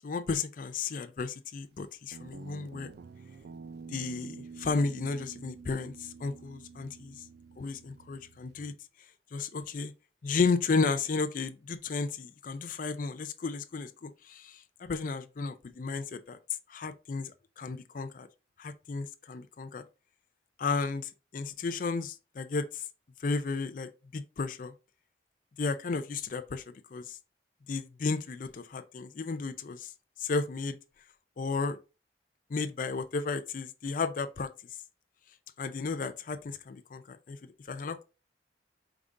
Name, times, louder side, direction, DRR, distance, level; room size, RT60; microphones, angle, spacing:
voice 1, 0.0-2.9 3.9-7.2 7.6-8.7 9.3-9.9 10.2-16.4 16.7-18.3 18.6-19.8 20.6-22.8 23.2-24.7 25.6-27.2 27.7-29.9 30.2-30.8 31.4-31.8 32.5-34.5 35.6-37.4 37.7-38.0, left 4 dB, 50° left, 0.4 m, -33 dB
Guitar, 2.1-8.7, right 5 dB, 65° right, 0.3 m, -48 dB
5.0 x 3.6 x 2.6 m
head